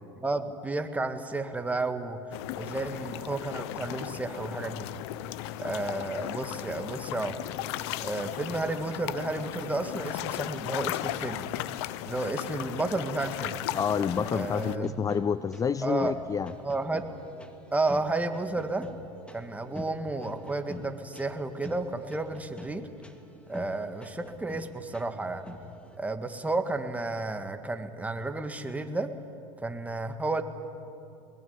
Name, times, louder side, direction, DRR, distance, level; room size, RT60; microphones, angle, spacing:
voice 1, 0.2-2.2 2.6-4.9 5.6-7.4 8.0-11.5 12.1-13.6 14.3-14.9 15.8-16.2 16.6-17.1 17.7-18.9 19.3-22.9 23.5-25.5 26.0-29.1 29.6-30.4, right 2 dB, 10° right, 7 dB, 1.9 m, -32 dB
sound 1, 2.3-14.8, left 14 dB, 70° left, 1.0 m, -36 dB
voice 2, 13.7-16.5 19.7-19.8, left 7 dB, 25° left, 15 dB, 0.5 m, -29 dB
sound 2, 14.1-26.0, left 1 dB, 5° left, 2.5 m, -45 dB
22.0 x 21.5 x 9.7 m, 2.6 s
supercardioid pair, 100°, 15 cm